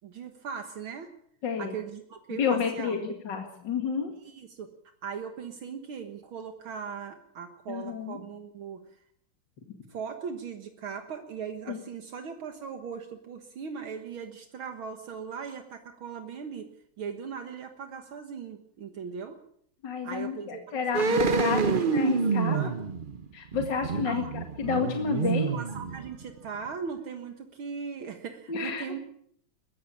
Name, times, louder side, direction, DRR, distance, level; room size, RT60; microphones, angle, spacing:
voice 1, 0.0-1.1 1.6-3.0 4.2-4.7 5.0-8.8 9.9-16.7 17.0-19.4 20.0-20.6 21.1-21.2 22.2-22.8 24.0-24.3 25.1-25.2 25.5-29.0, right 6 dB, 70° right, 6 dB, 2.3 m, -39 dB
voice 2, 1.4-1.8 2.4-4.1 7.7-8.2 11.7-11.8 19.8-22.7 23.3-24.2 24.6-25.5 28.5-28.8, left 6 dB, 55° left, 4 dB, 2.7 m, -30 dB
sound 1, 20.9-26.4 26.6-26.7, right 4 dB, 40° right, 0.8 m, -27 dB
21.5 x 15.5 x 8.7 m, 0.67 s
omnidirectional pair, 2.3 m